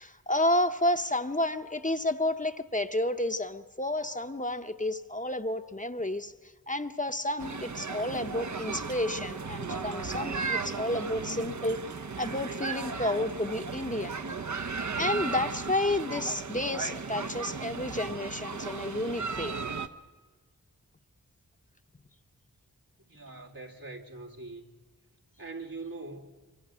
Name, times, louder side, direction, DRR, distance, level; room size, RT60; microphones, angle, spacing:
voice 1, 0.0-6.3 6.7-11.8 12.2-14.2 15.0-19.6, left 1 dB, 20° left, 0.9 m, -31 dB
sound 1, 7.4-19.9, right 4 dB, 55° right, 0.9 m, -35 dB
voice 2, 23.0-24.8 25.4-26.4, right 3 dB, 75° right, 2.3 m, -42 dB
24.5 x 24.0 x 6.3 m
wide cardioid pair, 45°, 35 cm